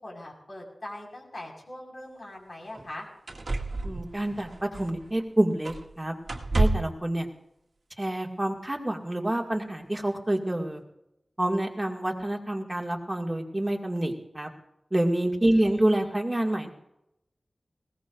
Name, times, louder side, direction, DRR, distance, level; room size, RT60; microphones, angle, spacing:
voice 1, 0.0-3.1 15.5-15.6, left 1 dB, 50° left, -1 dB, 5.1 m, -41 dB
sound 1, 2.0-2.1 2.7-2.9 3.3-5.2 5.6-5.9 6.2-7.0 8.1-8.2, right 2 dB, 65° right, 1.8 m, -29 dB
voice 2, 3.8-6.1 6.5-7.3 8.0-10.8 11.4-14.5 14.9-16.7, right 1 dB, 20° right, 1 dB, 2.2 m, -27 dB
20.0 x 18.0 x 2.6 m, 0.83 s
wide cardioid pair, 90°, 0 cm